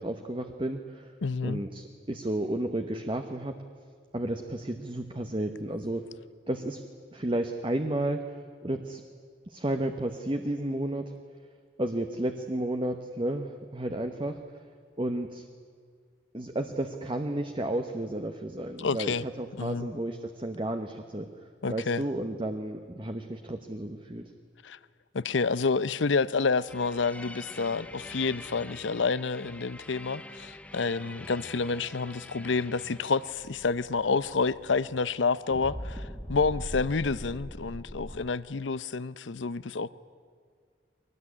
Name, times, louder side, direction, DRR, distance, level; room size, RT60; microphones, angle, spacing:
voice 1, 0.0-1.1 1.4-3.6 4.1-6.0 6.5-6.8 7.1-8.2 8.6-9.0 9.5-11.1 11.8-14.4 15.0-15.4 16.3-21.3 21.7-24.3, right 1 dB, 25° right, 1.0 m, -32 dB
voice 2, 1.2-1.6 18.8-19.2 19.6-19.9 21.6-22.0 24.6-24.8 25.1-39.9, left 4 dB, 85° left, 0.7 m, -29 dB
sound 1, 26.7-35.3 35.5-38.3, left 1 dB, 5° left, 0.9 m, -43 dB
23.0 x 19.5 x 9.8 m
head